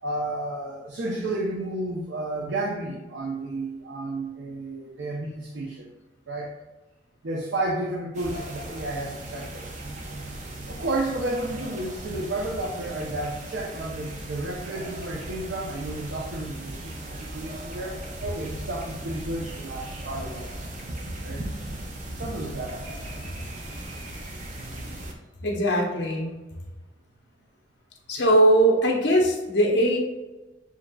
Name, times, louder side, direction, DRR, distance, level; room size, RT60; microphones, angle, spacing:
voice 1, 0.0-5.9 6.3-6.5 7.2-9.7 10.7-20.6 21.2-21.5 22.1-22.8, right 2 dB, 85° right, -2 dB, 0.7 m, -32 dB
sound 1, 8.1-25.1, right 1 dB, 40° right, 0.7 m, -37 dB
voice 2, 25.4-26.3 28.1-30.0, right 1 dB, 70° left, 0 dB, 0.9 m, -20 dB
7.1 x 2.9 x 2.3 m, 1.1 s
head